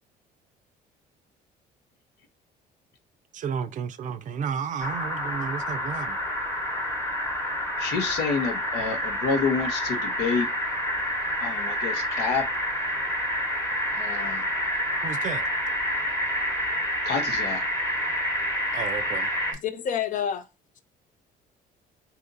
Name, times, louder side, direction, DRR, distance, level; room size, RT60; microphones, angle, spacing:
voice 1, 3.3-6.2 15.0-15.4 18.7-19.3, right 7 dB, 50° right, 0.4 m, -32 dB
sound 1, 4.8-19.5, equal, 15° left, 1.0 m, -28 dB
voice 2, 7.8-10.5 11.4-12.5 13.9-14.5 17.0-17.6, left 5 dB, 80° left, 0.9 m, -28 dB
voice 3, 19.6-20.5, left 8 dB, 50° left, 0.6 m, -28 dB
2.8 x 2.5 x 3.8 m
cardioid pair, 110°, 17 cm